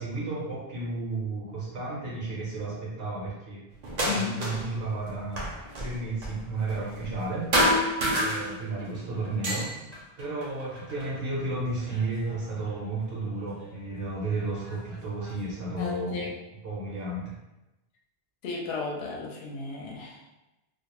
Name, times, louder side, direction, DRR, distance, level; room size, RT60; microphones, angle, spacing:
voice 1, 0.0-3.6 4.0-5.5 5.8-7.5 8.2-9.7 10.2-16.3 16.6-17.3, right 2 dB, 65° right, -5 dB, 0.9 m, -33 dB
sound 1, 3.8-4.8 5.0-7.3 7.5-8.9 9.2-11.1 11.8-12.7 13.6-13.7 14.3-15.4, equal, 50° right, 0.5 m, -29 dB
voice 2, 15.8-16.3 18.4-20.2, left 4 dB, 75° left, -1 dB, 0.8 m, -34 dB
2.3 x 2.1 x 2.9 m, 0.99 s
omnidirectional pair, 1.1 m